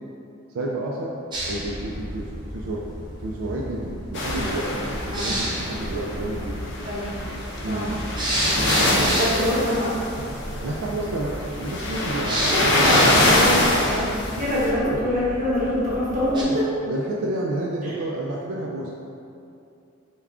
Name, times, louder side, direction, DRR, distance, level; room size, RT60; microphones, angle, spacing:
voice 1, 0.5-1.2 1.4-2.8 3.2-6.7 7.6-8.0 8.4-8.8 10.6-12.9 13.1-13.5 14.8-15.0 16.3-18.9, right 1 dB, 75° right, -3 dB, 0.3 m, -30 dB
sound 1, 1.3-16.4, right 1 dB, 20° right, 0.5 m, -32 dB
sound 2, 4.1-14.7, left 1 dB, 55° left, 0.5 m, -24 dB
voice 2, 9.0-9.9 12.3-16.4 17.8-17.9, left 1 dB, 35° right, -9 dB, 0.9 m, -25 dB
3.5 x 2.2 x 3.4 m, 2.5 s
head